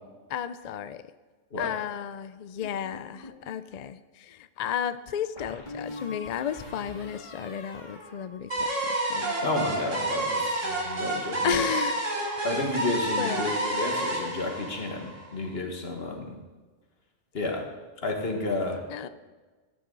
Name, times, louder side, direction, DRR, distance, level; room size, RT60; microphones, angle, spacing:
voice 1, 0.3-1.0 1.6-9.3 11.4-12.0 12.4-12.6 13.2-13.5 18.9-19.1, left 9 dB, 70° left, 13 dB, 0.4 m, -33 dB
sound 1, 2.6-3.5 5.4-8.9 9.1-9.6, left 2 dB, 40° left, 1.9 m, -44 dB
sound 2, 8.5-15.5, right 2 dB, 85° right, 2.7 m, -29 dB
voice 2, 9.4-11.7 12.4-16.4 17.3-17.7 18.0-18.8, left 2 dB, 55° left, 2 dB, 1.9 m, -31 dB
13.5 x 9.2 x 3.9 m, 1.3 s
omnidirectional pair, 1.3 m